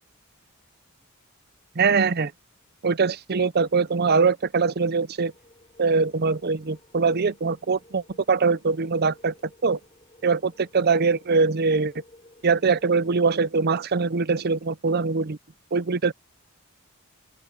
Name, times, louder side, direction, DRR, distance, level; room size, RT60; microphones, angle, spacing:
voice 1, 1.8-2.3 2.8-5.3 5.8-9.3 9.6-9.8 10.2-11.9 12.4-15.4 15.7-16.1, right 4 dB, 50° right, 0.6 m, -22 dB
sound 1, 5.3-13.1, left 1 dB, 25° left, 7.1 m, -55 dB
open air
head